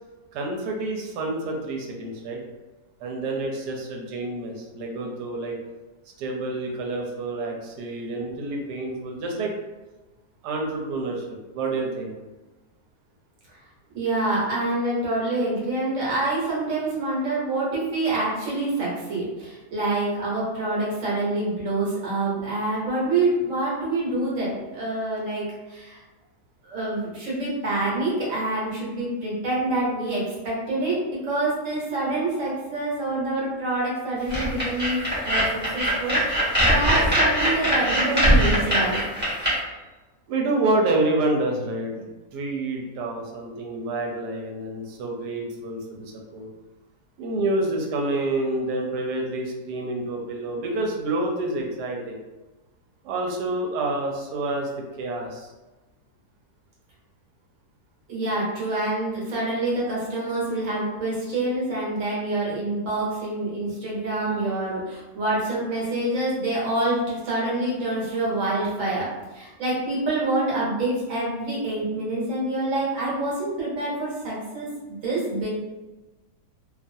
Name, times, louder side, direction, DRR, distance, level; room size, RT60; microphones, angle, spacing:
voice 1, 0.3-2.4 3.0-5.5 6.2-9.6 10.4-12.1 40.3-46.5 47.2-52.2 53.0-54.7 55.0-55.5, right 2 dB, 85° right, 0 dB, 1.2 m, -28 dB
voice 2, 13.9-26.0 26.6-31.0 31.2-39.0 58.1-69.1 69.3-75.5, right 2 dB, 55° right, -6 dB, 1.2 m, -26 dB
sound 1, 34.3-39.5, equal, 10° right, 0.9 m, -21 dB
2.6 x 2.4 x 2.6 m, 1.1 s
omnidirectional pair, 1.7 m